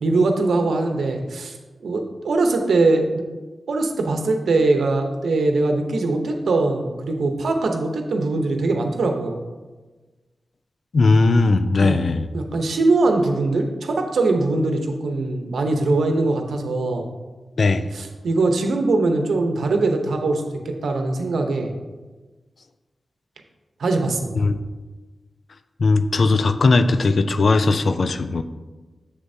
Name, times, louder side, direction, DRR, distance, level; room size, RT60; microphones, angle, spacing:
voice 1, 0.0-1.6 1.8-3.0 3.7-9.4 11.8-12.0 12.3-17.1 17.9-21.7 23.8-24.4, right 3 dB, 85° right, 4 dB, 0.8 m, -21 dB
voice 2, 10.9-12.3 17.6-17.9 24.4-24.6 25.8-28.4, left 3 dB, 65° left, 11 dB, 0.4 m, -18 dB
7.3 x 6.7 x 2.7 m, 1.3 s
cardioid pair, 65°, 0 cm